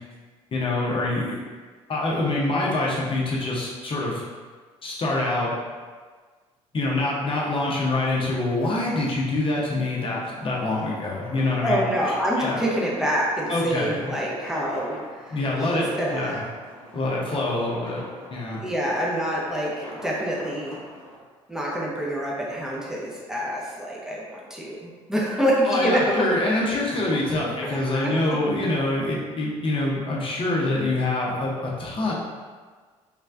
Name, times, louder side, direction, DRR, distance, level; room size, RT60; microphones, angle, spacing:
voice 1, 0.5-1.4 1.9-4.2 4.8-5.5 6.7-11.8 12.4-12.6 13.5-14.1 15.3-16.4 16.9-18.0 18.3-18.6 25.7-32.1, left 2 dB, 30° left, -4 dB, 0.7 m, -25 dB
sound 1, 9.9-21.2, equal, 90° left, 0.5 m, -43 dB
voice 2, 11.6-15.4 15.7-16.4 18.6-20.8 21.5-26.3 26.7-26.8 27.6-28.4, equal, 5° right, -4 dB, 0.8 m, -26 dB
3.3 x 3.1 x 2.5 m, 1.5 s
figure-of-eight pair, 50°, 17 cm